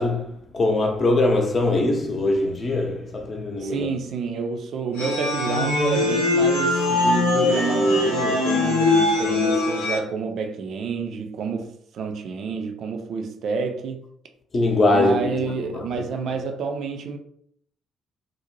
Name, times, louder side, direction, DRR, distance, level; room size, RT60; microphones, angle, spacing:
voice 1, 0.0-3.9 14.5-15.9, left 2 dB, 40° left, 0.7 m, -22 dB
voice 2, 3.6-14.0 14.9-17.2, right 5 dB, 55° right, 0.4 m, -29 dB
sound 1, 5.0-10.0, left 2 dB, 80° left, 0.5 m, -21 dB
2.6 x 2.0 x 3.0 m
figure-of-eight pair, 45°, 0 cm